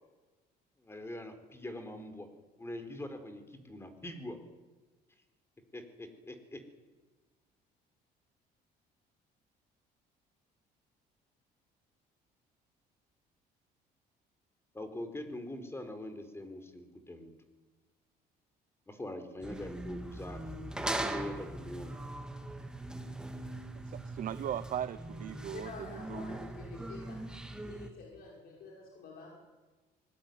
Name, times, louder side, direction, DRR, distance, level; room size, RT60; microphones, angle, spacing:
voice 1, 0.8-2.3 2.6-4.4 5.7-6.6 14.7-17.3 18.9-20.4 21.0-22.0, left 1 dB, 15° left, 8 dB, 4.3 m, -43 dB
sound 1, 19.4-27.9, right 1 dB, 5° right, 2.6 m, -40 dB
voice 2, 23.8-26.4, right 10 dB, 55° right, 14 dB, 0.8 m, -39 dB
voice 3, 25.5-27.2 27.6-29.4, left 4 dB, 65° left, -1 dB, 5.8 m, -48 dB
24.0 x 20.5 x 9.5 m, 1.2 s
cardioid pair, 110°, 17 cm